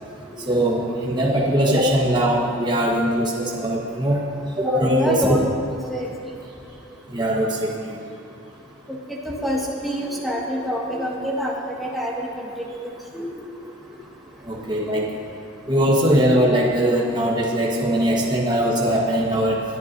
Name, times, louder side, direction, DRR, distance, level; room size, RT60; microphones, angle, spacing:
voice 1, 0.5-4.2 4.6-5.4 7.1-7.9 14.5-15.1 15.7-19.6, equal, 25° right, -3 dB, 1.3 m, -21 dB
voice 2, 4.6-5.4 5.9-6.1 9.2-11.5 11.8-13.2, equal, ahead, -5 dB, 1.8 m, -26 dB
21.5 x 10.5 x 2.7 m, 2.6 s
head